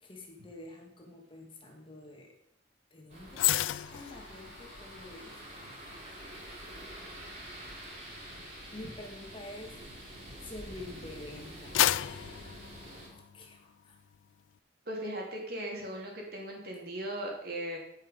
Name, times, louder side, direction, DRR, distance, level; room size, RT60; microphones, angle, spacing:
voice 1, 0.0-2.3 2.9-6.0 8.7-9.8 10.4-12.1 13.1-14.0, left 2 dB, 25° left, 1 dB, 1.8 m, -48 dB
sound 1, 3.1-13.1, right 1 dB, 35° right, 3.1 m, -47 dB
sound 2, 3.3-10.7 11.2-13.6 13.9-14.2, left 13 dB, 85° left, 0.3 m, -35 dB
voice 2, 14.9-17.8, right 1 dB, 50° right, 0 dB, 2.7 m, -38 dB
14.0 x 5.6 x 5.0 m, 0.73 s
head